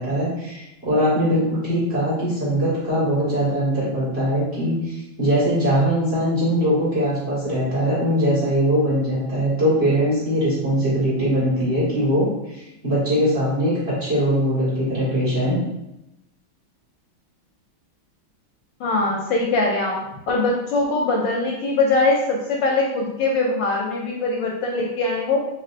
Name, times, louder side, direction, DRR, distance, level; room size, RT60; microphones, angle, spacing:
voice 1, 0.0-15.6, equal, 35° right, -9 dB, 1.8 m, -21 dB
voice 2, 18.8-20.0 20.3-25.4, left 3 dB, 75° left, -1 dB, 1.2 m, -22 dB
4.3 x 3.1 x 2.5 m, 0.89 s
omnidirectional pair, 2.2 m